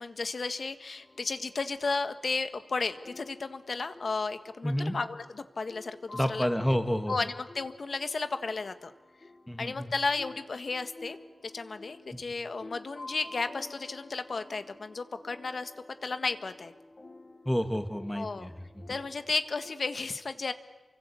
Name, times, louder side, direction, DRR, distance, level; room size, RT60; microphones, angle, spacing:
voice 1, 0.0-6.5 7.1-8.9 9.6-11.2 11.5-15.7 16.0-16.7 18.1-18.5 18.9-20.5, left 4 dB, 70° left, 9 dB, 1.6 m, -33 dB
sound 1, 1.0-19.7, left 2 dB, 45° left, 3.6 m, -51 dB
voice 2, 4.6-5.0 6.1-7.1 9.5-9.9 12.1-12.2 17.5-18.9, equal, 10° left, 7 dB, 2.3 m, -30 dB
29.0 x 24.5 x 8.4 m, 1.2 s
wide cardioid pair, 70°, 0 cm